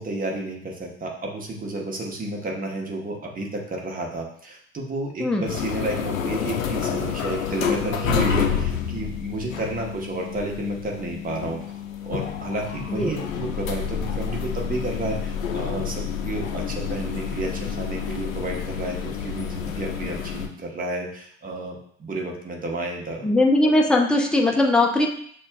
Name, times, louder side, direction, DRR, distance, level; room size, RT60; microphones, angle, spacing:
voice 1, 0.0-23.3 23.6-23.7, right 2 dB, 20° right, 0 dB, 1.0 m, -31 dB
sound 1, 5.5-20.5, left 7 dB, 80° left, 0.5 m, -29 dB
voice 2, 23.2-25.1, left 2 dB, ahead, 1 dB, 0.6 m, -19 dB
6.6 x 2.4 x 2.3 m, 0.62 s
figure-of-eight pair, 70°, 40 cm